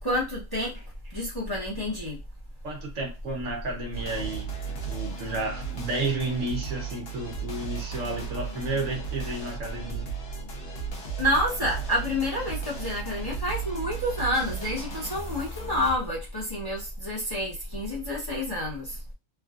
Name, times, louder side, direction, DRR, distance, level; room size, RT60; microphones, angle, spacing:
voice 1, 0.0-2.2 11.2-19.0, left 1 dB, 20° left, 1.0 m, -29 dB
voice 2, 2.6-10.1, right 2 dB, 70° right, 1.3 m, -32 dB
sound 1, 3.9-16.0, right 5 dB, 55° left, 1.0 m, -35 dB
3.4 x 2.4 x 2.4 m
omnidirectional pair, 1.4 m